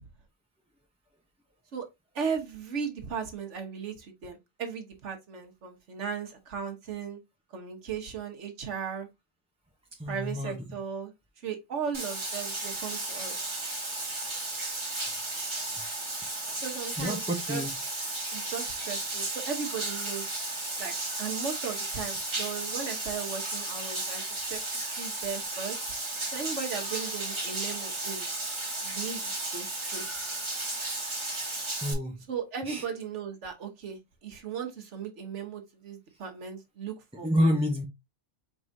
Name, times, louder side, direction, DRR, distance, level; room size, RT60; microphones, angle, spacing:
voice 1, 2.1-7.2 7.5-9.1 10.1-11.1 11.4-13.4 16.6-17.6 18.3-20.3 20.8-24.2 24.5-24.6 24.9-26.0 26.3-28.3 28.8-30.1 32.3-37.6, right 6 dB, 75° right, 1.4 m, -37 dB
voice 2, 10.0-10.8 17.0-17.7 31.8-32.2 32.6-32.8 37.2-37.9, equal, 5° right, 0.6 m, -28 dB
Bathtub (filling or washing), 11.9-31.9, right 2 dB, 25° right, 1.1 m, -34 dB
4.7 x 3.6 x 2.6 m
omnidirectional pair, 1.2 m